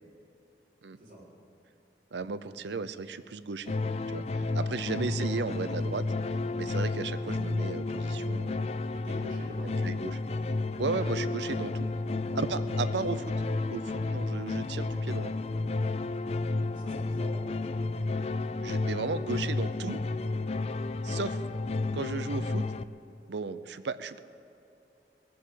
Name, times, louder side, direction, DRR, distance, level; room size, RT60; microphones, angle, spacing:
voice 1, 2.1-3.7 4.1-6.0 6.5-8.6 9.8-10.2 10.8-11.9 12.3-13.3 13.7-15.3 18.6-20.0 21.0-21.4 21.9-22.7 23.3-24.2, right 4 dB, 85° right, 13 dB, 0.6 m, -35 dB
sound 1, 3.7-22.8, left 3 dB, 35° left, 0.3 m, -31 dB
voice 2, 8.9-9.9 12.2-12.4 16.7-17.6, right 1 dB, 45° right, -6 dB, 4.3 m, -47 dB
18.5 x 7.7 x 8.5 m, 2.8 s
head